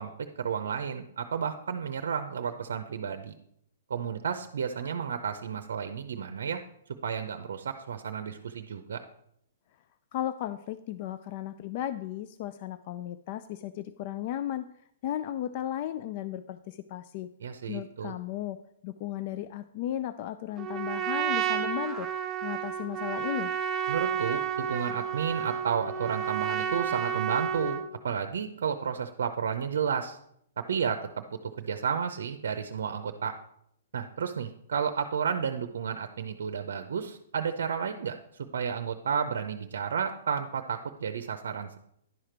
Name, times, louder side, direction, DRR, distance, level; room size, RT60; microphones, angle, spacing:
voice 1, 0.0-3.3 3.9-6.6 7.0-9.0 17.4-18.1 23.9-30.2 30.6-33.3 33.9-41.8, right 7 dB, 75° right, 8 dB, 0.6 m, -32 dB
voice 2, 10.1-14.7 15.0-17.3 17.7-18.6 18.8-22.1 22.4-23.5, left 12 dB, 45° left, 13 dB, 0.3 m, -35 dB
Trumpet, 20.6-27.9, right 8 dB, 15° right, 1.0 m, -31 dB
11.0 x 4.9 x 4.5 m, 0.72 s
hypercardioid pair, 135°, 0 cm